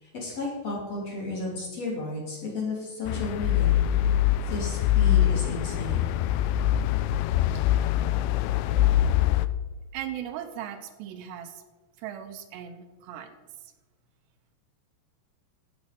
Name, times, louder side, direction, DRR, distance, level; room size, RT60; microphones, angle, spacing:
voice 1, 0.0-3.8 4.5-6.0, left 2 dB, 40° left, -4 dB, 3.7 m, -33 dB
sound 1, 3.1-9.5, left 12 dB, 85° left, 2.6 m, -23 dB
voice 2, 9.9-11.6 12.0-13.7, right 10 dB, 80° right, 7 dB, 2.9 m, -38 dB
13.5 x 8.1 x 5.2 m, 1.2 s
omnidirectional pair, 4.9 m